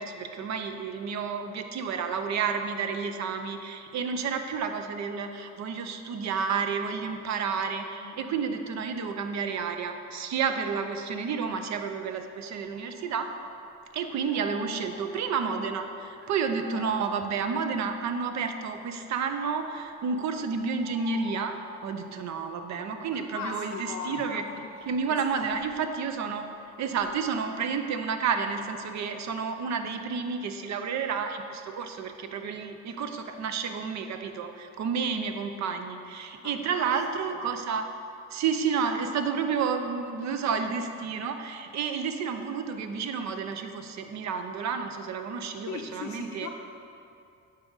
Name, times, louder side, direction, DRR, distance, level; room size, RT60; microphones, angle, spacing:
voice 1, 0.0-13.3 13.9-21.6 21.8-24.4 24.9-26.5 26.8-37.9 38.3-46.5, right 5 dB, 65° right, 7 dB, 0.6 m, -31 dB
voice 2, 8.0-8.4 23.1-24.6 25.1-25.4 36.4-36.9 37.3-37.4 45.7-46.5, left 6 dB, 70° left, 1 dB, 0.5 m, -40 dB
sound 1, 12.5-13.7 14.1-18.5 19.1-25.8 26.6-29.2, left 1 dB, 35° right, 1.1 m, -47 dB
9.6 x 3.9 x 4.0 m, 2.6 s
cardioid pair, 90°, 30 cm